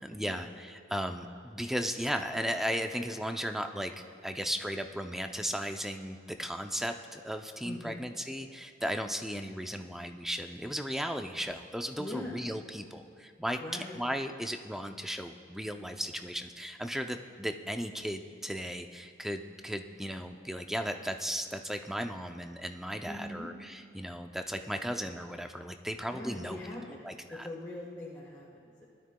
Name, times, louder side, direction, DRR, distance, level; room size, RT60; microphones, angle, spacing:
voice 1, 0.0-3.9 4.2-26.6 27.0-27.5, equal, ahead, 6 dB, 0.4 m, -36 dB
voice 2, 7.6-8.0 12.0-12.4 13.6-14.0 23.1-23.5 26.1-27.0 27.3-28.5, left 1 dB, 15° left, -5 dB, 1.2 m, -41 dB
20.5 x 12.5 x 2.2 m, 2.3 s
head